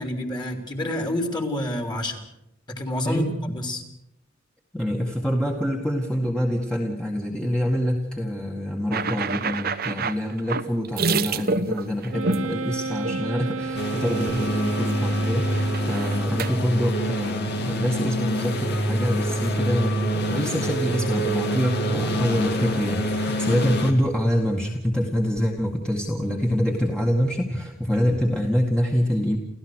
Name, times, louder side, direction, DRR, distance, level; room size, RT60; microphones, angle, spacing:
voice 1, 0.0-2.2 2.7-3.8, left 1 dB, 25° left, 4 dB, 3.2 m, -28 dB
voice 2, 3.0-3.6 4.7-29.4, equal, 5° left, -1 dB, 1.9 m, -25 dB
sound 1, 8.9-12.5 13.0-13.2 13.6-13.9 14.1-14.9 15.2-16.5, right 4 dB, 50° right, 1.0 m, -28 dB
Wind instrument woodwind instrument, 12.1-16.7, right 4 dB, 85° right, 0.9 m, -32 dB
sound 2, 13.7-23.9, equal, 60° left, 2.9 m, -26 dB
29.5 x 15.0 x 6.4 m, 0.82 s
head